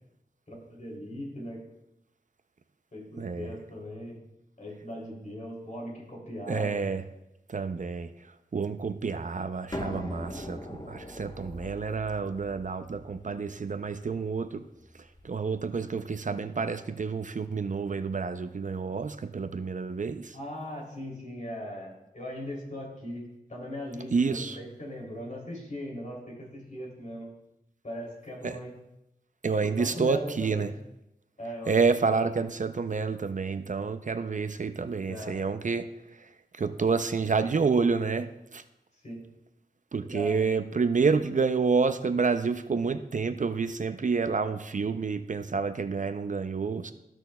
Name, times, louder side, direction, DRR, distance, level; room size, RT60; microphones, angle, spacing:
voice 1, 0.5-1.6 2.9-4.2 4.6-6.8 20.3-27.3 27.8-28.7 29.6-30.7 31.4-32.5 35.1-35.4 39.0-39.2 40.1-40.5, equal, 50° left, -2 dB, 2.9 m, -39 dB
voice 2, 3.2-3.5 6.5-7.0 7.5-8.1 8.5-14.6 15.2-20.3 24.1-24.6 28.4-28.6 29.4-30.7 31.7-35.9 36.6-38.6 39.9-46.9, right 4 dB, 50° right, 10 dB, 0.5 m, -28 dB
sound 1, 9.7-15.3, left 1 dB, 25° left, 0.9 m, -42 dB
14.5 x 6.1 x 2.2 m, 0.88 s
wide cardioid pair, 65°, 16 cm